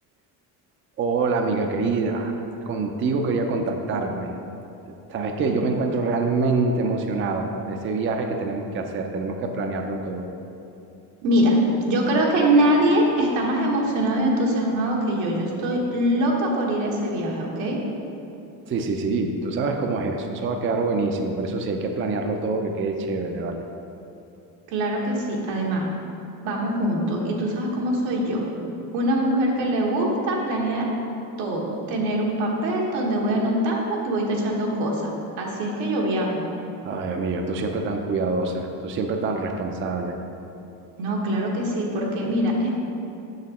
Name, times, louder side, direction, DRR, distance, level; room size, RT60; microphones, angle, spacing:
voice 1, 1.0-2.3 2.7-4.3 4.9-10.3 18.7-23.6 36.8-40.2, right 3 dB, 30° right, 4 dB, 0.5 m, -25 dB
voice 2, 11.2-11.6 11.8-17.8 24.7-25.9 26.4-28.4 28.9-30.9 31.4-35.1 35.4-36.5 41.0-42.7, right 1 dB, 85° right, -2 dB, 1.4 m, -23 dB
6.4 x 6.1 x 4.2 m, 2.8 s
cardioid pair, 115°, 40 cm